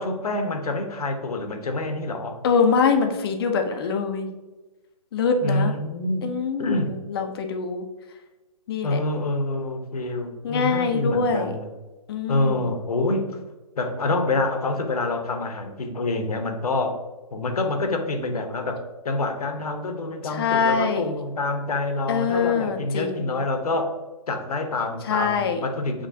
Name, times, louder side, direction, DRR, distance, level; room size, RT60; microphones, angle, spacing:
voice 1, 0.0-2.4 5.4-6.3 6.6-7.0 8.8-11.7 12.3-13.3 13.8-17.0 17.3-18.8 19.0-23.9 24.3-26.1, left 2 dB, 75° left, 5 dB, 0.9 m, -26 dB
voice 2, 2.4-4.3 5.1-5.7 6.2-7.8 8.7-9.0 10.4-11.5 12.1-12.7 20.2-21.1 22.1-23.4 25.0-25.6, left 5 dB, 40° left, 5 dB, 0.6 m, -24 dB
6.4 x 3.0 x 2.7 m, 1.1 s
hypercardioid pair, 150°, 19 cm